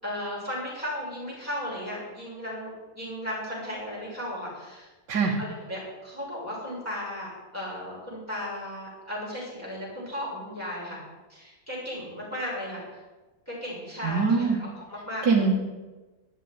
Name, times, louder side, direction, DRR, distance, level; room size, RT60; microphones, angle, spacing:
voice 1, 0.0-4.9 5.4-11.0 11.3-13.0 13.5-15.4, left 1 dB, 10° left, -7 dB, 6.1 m, -35 dB
voice 2, 14.0-14.6 15.2-15.6, right 4 dB, 85° right, -2 dB, 2.2 m, -22 dB
12.0 x 8.5 x 9.6 m, 1.2 s
omnidirectional pair, 1.8 m